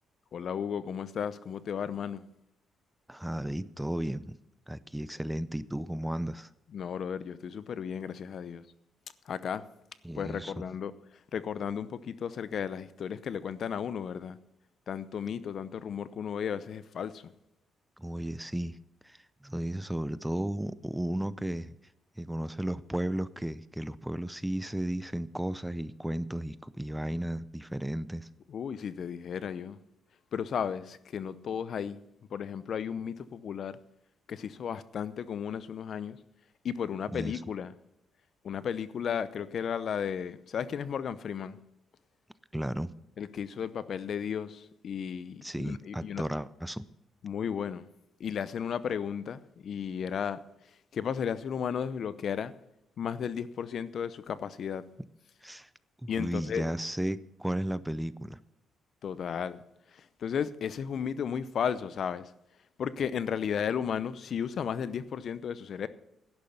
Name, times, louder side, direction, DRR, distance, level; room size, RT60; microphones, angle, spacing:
voice 1, 0.3-2.2 6.7-8.6 9.3-9.6 10.2-10.9 11.3-14.4 14.9-17.3 28.5-29.8 30.3-32.0 32.3-33.7 34.3-36.2 36.6-37.7 38.4-41.6 43.2-46.2 47.2-47.8 48.2-50.4 50.9-52.5 53.0-54.8 56.1-56.6 59.0-59.6 59.9-62.3 62.8-65.9, left 7 dB, 60° left, 0.7 m, -34 dB
voice 2, 3.1-4.4 4.7-6.5 10.0-10.5 18.0-18.8 19.0-21.7 22.2-28.3 37.1-37.4 42.5-42.9 45.4-46.9 55.4-55.7 56.0-58.4, right 1 dB, 5° right, 0.6 m, -34 dB
11.5 x 10.5 x 5.8 m
cardioid pair, 90°, 0 cm